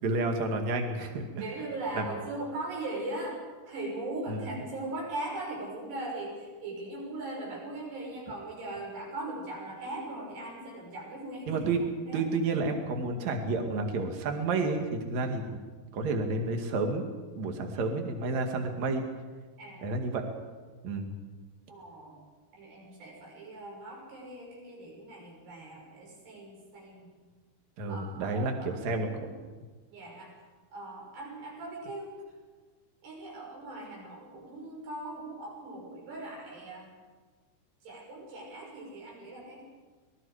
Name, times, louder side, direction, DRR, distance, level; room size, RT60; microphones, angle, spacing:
voice 1, 0.0-1.4 1.9-2.1 4.3-4.4 11.5-11.8 12.1-15.6 15.9-17.1 17.4-19.0 19.8-20.2 20.8-21.1 27.8-29.1, right 3 dB, 50° right, 4 dB, 3.1 m, -30 dB
voice 2, 1.4-3.4 3.7-11.7 12.0-12.3 17.7-17.9 19.6-19.9 21.7-22.2 22.5-27.1 27.9-29.3 29.9-30.3 30.7-32.1 33.0-36.9 37.8-39.6, right 2 dB, 75° right, -2 dB, 8.1 m, -39 dB
26.0 x 21.0 x 5.0 m, 1.4 s
omnidirectional pair, 4.8 m